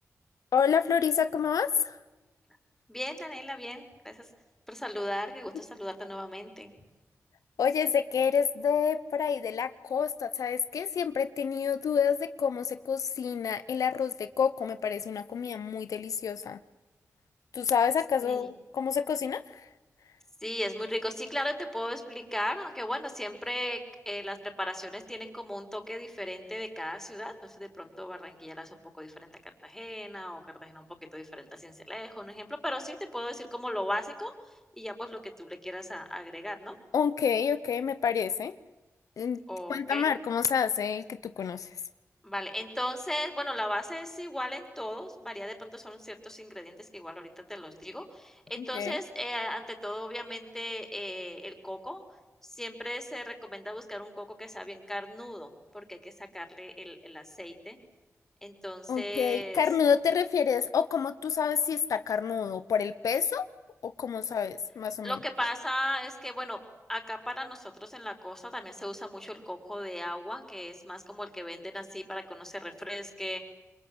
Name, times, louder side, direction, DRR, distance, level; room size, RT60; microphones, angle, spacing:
voice 1, 0.5-2.0 7.6-16.6 17.5-19.6 36.9-38.5 39.2-39.4 39.7-41.7 48.7-49.0 58.9-63.4 63.8-65.2, left 7 dB, 90° left, 13 dB, 0.8 m, -28 dB
voice 2, 2.9-4.3 4.7-6.7 18.2-18.5 20.4-29.3 29.6-30.9 31.1-36.8 39.5-40.1 42.2-52.0 52.5-57.8 58.4-59.6 65.0-66.6 66.9-73.4, left 1 dB, 10° left, 5 dB, 5.0 m, -37 dB
28.0 x 22.5 x 8.0 m, 1.1 s
cardioid pair, 50°, 6 cm